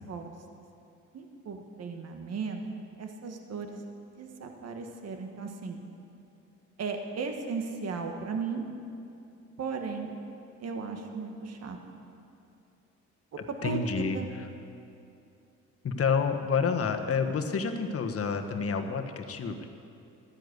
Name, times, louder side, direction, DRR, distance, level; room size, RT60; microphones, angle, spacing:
voice 1, 1.1-2.6 3.0-3.8 4.2-5.8 6.8-8.7 9.6-10.2 10.6-11.8 13.5-14.3, right 5 dB, 55° right, 4 dB, 1.6 m, -36 dB
voice 2, 13.6-14.4 15.8-19.7, left 5 dB, 50° left, 6 dB, 1.3 m, -29 dB
13.0 x 10.5 x 8.1 m, 2.6 s
cardioid pair, 90°, 30 cm